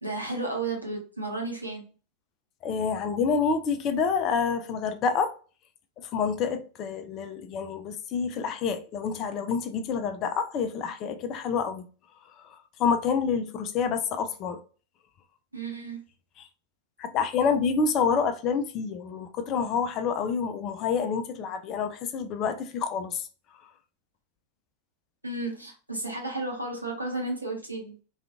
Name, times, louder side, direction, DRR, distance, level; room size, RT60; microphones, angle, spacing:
voice 1, 0.0-1.9 15.5-16.0 25.2-28.0, right 2 dB, 85° right, 0.8 m, -33 dB
voice 2, 2.6-5.3 6.0-11.9 12.4-12.5 12.8-14.6 16.4-16.5 17.0-23.3, left 6 dB, 35° left, 0.4 m, -28 dB
2.4 x 2.3 x 2.7 m
figure-of-eight pair, 90°, 0 cm